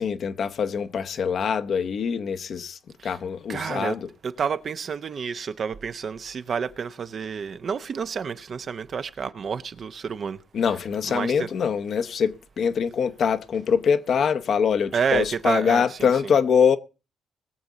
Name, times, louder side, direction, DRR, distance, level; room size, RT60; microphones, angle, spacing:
voice 1, 0.0-4.1 10.5-16.8, left 7 dB, 60° left, 0.9 m, -24 dB
voice 2, 3.5-4.0 4.2-10.4 11.1-11.5 14.9-16.1, right 6 dB, 50° right, 0.8 m, -29 dB
20.5 x 7.1 x 4.0 m
cardioid pair, 90°, 0 cm